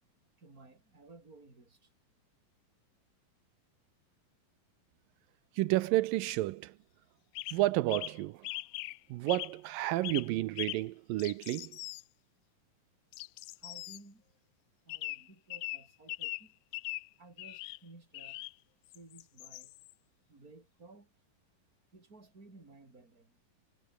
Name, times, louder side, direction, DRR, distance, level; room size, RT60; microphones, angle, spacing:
voice 1, 0.4-1.9 13.6-14.2 14.8-16.5 17.2-18.4 18.9-19.7 20.3-21.1 21.9-23.4, right 3 dB, 25° right, 6.0 m, -56 dB
voice 2, 5.6-6.7 7.5-8.5 9.1-11.8, right 17 dB, 85° right, 2.4 m, -31 dB
sound 1, 7.3-7.6 7.9-8.2 8.4-9.0 9.3-9.6 10.0-10.3 10.6-10.8 11.2-12.0 13.1-14.0 14.9-16.5 16.7-17.1 17.4-17.8 18.1-18.5 18.9-19.9, left 21 dB, 85° left, 2.3 m, -41 dB
omnidirectional pair, 4.1 m